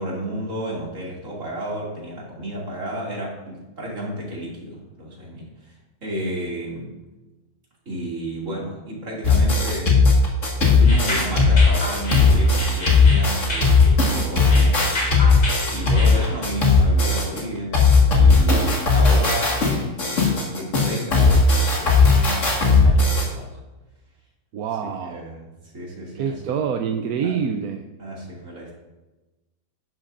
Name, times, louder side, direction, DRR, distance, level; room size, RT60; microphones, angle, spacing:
voice 1, 0.0-7.0 7.9-10.0 10.6-15.0 15.7-17.8 18.1-23.6 24.8-25.4 25.7-26.3 27.2-27.3 28.0-28.8, equal, 60° right, -4 dB, 3.0 m, -32 dB
sound 1, 9.2-17.4 17.7-23.3, left 4 dB, 55° left, 2.2 m, -17 dB
sound 2, 10.8-16.4, left 1 dB, 80° left, 3.4 m, -30 dB
voice 2, 24.5-25.3 26.1-27.9, right 7 dB, 85° right, 5 dB, 1.1 m, -26 dB
11.0 x 11.0 x 2.6 m, 1.1 s
omnidirectional pair, 1.5 m